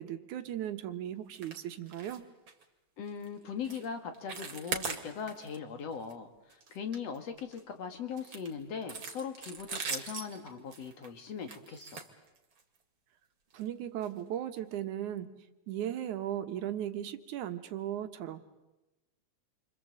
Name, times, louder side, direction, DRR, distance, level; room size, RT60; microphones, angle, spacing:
voice 1, 0.0-2.2 13.5-15.4 15.7-18.4, right 11 dB, 85° right, 9 dB, 2.8 m, -37 dB
sound 1, 1.3-1.6 1.9-2.2 2.5-2.6 3.1-3.3 3.6-3.9 4.1-5.6 5.9-6.1 6.5-7.6 8.2-12.8 13.5-13.7 14.0-14.1 14.6-14.7, right 5 dB, 45° right, 2.8 m, -41 dB
voice 2, 3.0-6.3 6.7-12.0, left 6 dB, 60° left, 7 dB, 3.0 m, -40 dB
29.0 x 25.0 x 7.8 m, 1.0 s
omnidirectional pair, 3.4 m